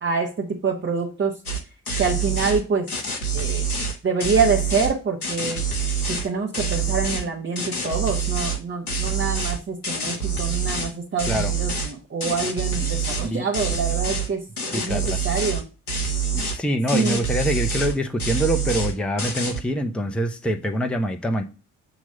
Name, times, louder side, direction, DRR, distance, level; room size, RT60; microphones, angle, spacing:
voice 1, 0.0-1.3 2.0-2.9 3.3-3.6 4.0-5.6 6.1-15.6 16.9-17.2, right 5 dB, 25° right, 1.3 m, -26 dB
sound 1, 1.5-1.6 1.9-2.6 2.9-4.9 5.2-6.3 6.5-7.2 7.6-8.6 8.9-10.9 11.2-11.9 12.2-13.3 13.5-14.3 14.6-15.6 15.9-16.6 16.9-17.9 18.2-18.9 19.2-19.6, right 4 dB, 90° left, 0.8 m, -26 dB
voice 2, 14.7-15.2 16.3-21.4, equal, 5° left, 0.7 m, -25 dB
7.1 x 3.1 x 5.5 m
figure-of-eight pair, 45°, 42 cm